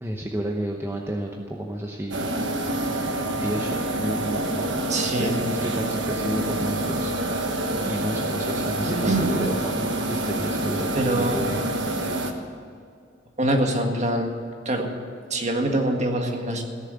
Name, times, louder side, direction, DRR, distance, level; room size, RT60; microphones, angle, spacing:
voice 1, 0.0-2.6 3.4-11.6, right 1 dB, 15° right, 0 dB, 0.9 m, -31 dB
sound 1, 2.1-12.3, right 1 dB, 70° right, 1.4 m, -27 dB
voice 2, 4.9-5.4 8.8-9.3 11.0-11.5 13.4-14.3 14.7-14.9 15.3-16.6, right 1 dB, 40° right, 3 dB, 1.8 m, -24 dB
16.5 x 7.3 x 9.4 m, 2.2 s
head